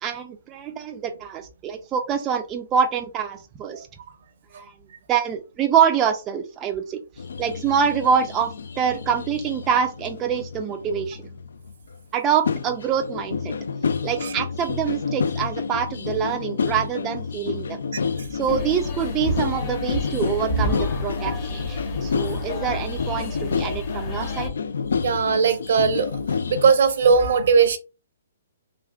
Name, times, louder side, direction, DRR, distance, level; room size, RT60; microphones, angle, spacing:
voice 1, 0.0-3.9 4.6-4.7 5.1-7.0 7.4-11.2 12.1-13.5 14.0-17.8 18.3-24.5, right 7 dB, 25° right, 5 dB, 0.3 m, -25 dB
sound 1, 7.2-12.0 12.4-26.7, left 5 dB, 75° left, 0.3 m, -29 dB
sound 2, 18.5-24.5, left 1 dB, 35° left, 0.8 m, -30 dB
voice 2, 25.0-26.2 26.5-27.8, right 5 dB, 65° right, 10 dB, 0.7 m, -19 dB
3.4 x 2.4 x 2.3 m, 0.30 s
hypercardioid pair, 135°, 0 cm